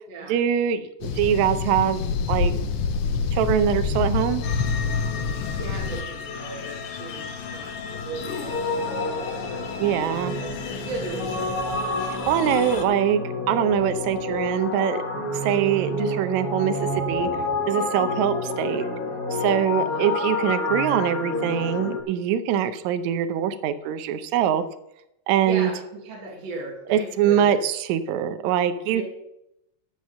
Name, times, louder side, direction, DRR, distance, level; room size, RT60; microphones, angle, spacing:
voice 1, 0.3-2.0 2.3-2.6 3.3-4.4 9.8-10.3 12.1-13.2 13.5-15.0 15.4-17.3 17.7-18.9 19.3-24.6 25.3-25.7 26.9-29.0, right 9 dB, 75° right, 11 dB, 2.0 m, -23 dB
sound 1, 1.0-6.0, left 5 dB, 70° left, 1.5 m, -26 dB
sound 2, 4.4-12.9, left 5 dB, 90° left, 2.7 m, -35 dB
voice 2, 5.3-10.2 10.9-11.7 19.8-20.1 25.4-27.6 28.9-29.0, right 3 dB, 60° right, -1 dB, 3.0 m, -37 dB
sound 3, 8.5-22.0, left 2 dB, 40° left, 1.4 m, -29 dB
12.5 x 5.1 x 7.5 m, 0.84 s
omnidirectional pair, 3.5 m